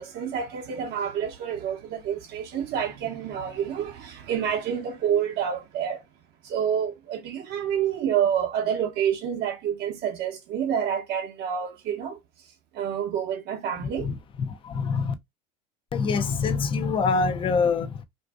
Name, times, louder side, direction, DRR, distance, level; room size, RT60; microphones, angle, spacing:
voice 1, 0.0-6.0 6.4-12.2 12.7-14.1, right 8 dB, 50° right, 0.8 m, -28 dB
voice 2, 14.0-15.1 15.9-18.0, left 5 dB, 25° left, 0.4 m, -25 dB
2.5 x 2.4 x 2.3 m
supercardioid pair, 110°, 21 cm